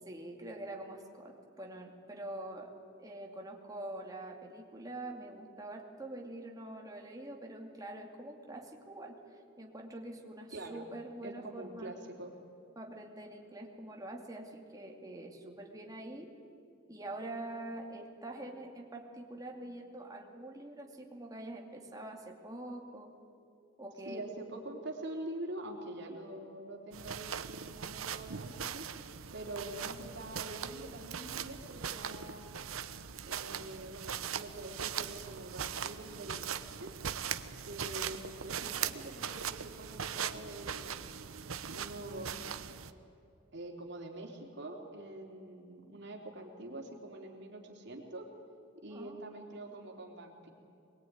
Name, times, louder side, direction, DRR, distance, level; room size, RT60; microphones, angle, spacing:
voice 1, 0.1-2.7 3.0-11.9 12.8-16.3 16.9-23.1 23.8-24.2 48.9-49.2, right 1 dB, 15° right, 0 dB, 2.5 m, -45 dB
voice 2, 10.5-10.9 11.2-12.3 24.0-28.8 29.3-32.5 33.3-36.9 37.6-41.2 41.7-42.4 43.5-48.3 48.8-50.5, right 1 dB, 55° right, 1 dB, 3.4 m, -45 dB
sound 1, 26.9-42.9, right 8 dB, 85° right, 1.0 m, -40 dB
24.5 x 21.0 x 9.6 m, 2.6 s
head